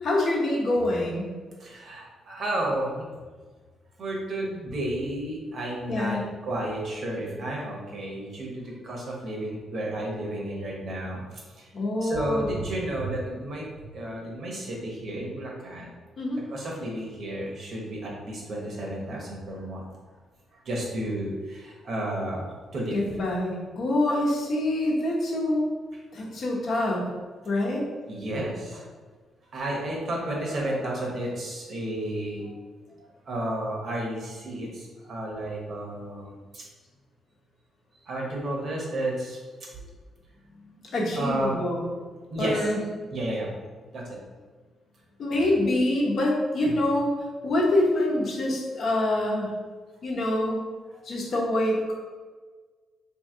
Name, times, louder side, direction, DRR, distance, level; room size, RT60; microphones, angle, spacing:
voice 1, 0.0-1.3 5.9-6.3 11.7-12.5 16.2-16.4 22.9-25.6 26.1-27.0 27.4-27.8 40.6-41.8 42.4-42.9 45.2-47.1 47.4-49.5 50.0-50.6 51.0-51.9, left 1 dB, 55° left, -3 dB, 0.9 m, -25 dB
voice 2, 1.6-3.1 4.0-11.7 12.0-15.9 16.5-19.8 20.6-23.0 28.1-28.9 29.5-32.6 33.0-36.6 38.1-39.4 41.1-41.5 42.3-42.7 43.1-43.5 43.9-44.2 46.6-46.7 50.9-51.0, right 1 dB, 55° right, -2 dB, 1.0 m, -32 dB
2.9 x 2.7 x 3.7 m, 1.4 s
cardioid pair, 110°, 0 cm